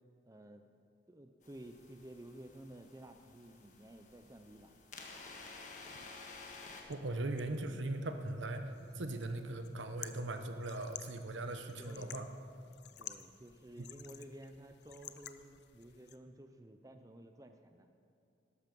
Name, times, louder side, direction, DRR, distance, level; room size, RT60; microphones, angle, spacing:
voice 1, 0.3-0.6 1.1-4.7 11.8-12.3 13.0-17.9, right 1 dB, 20° right, 6 dB, 0.5 m, -53 dB
sound 1, 1.4-6.8, left 3 dB, 40° left, 1.5 m, -53 dB
sound 2, 5.8-16.2, left 11 dB, 60° left, 0.6 m, -54 dB
voice 2, 6.9-8.7 8.9-12.2, right 2 dB, 80° right, 7 dB, 1.0 m, -39 dB
13.5 x 12.0 x 5.3 m, 2.7 s
head